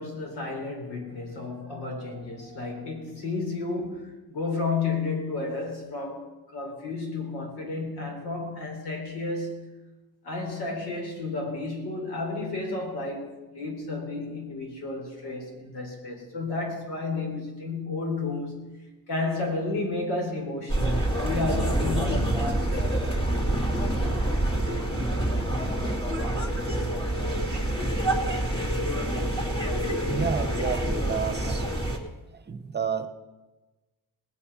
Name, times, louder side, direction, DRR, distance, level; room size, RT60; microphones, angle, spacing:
voice 1, 0.0-9.7 10.2-23.4 27.8-27.9, left 3 dB, 80° left, 4.6 m, -32 dB
sound 1, 20.7-32.0, right 1 dB, 15° left, 2.5 m, -27 dB
voice 2, 30.1-31.7 32.3-33.1, right 6 dB, 25° right, 1.1 m, -30 dB
19.5 x 8.8 x 5.8 m
cardioid pair, 120°, 38 cm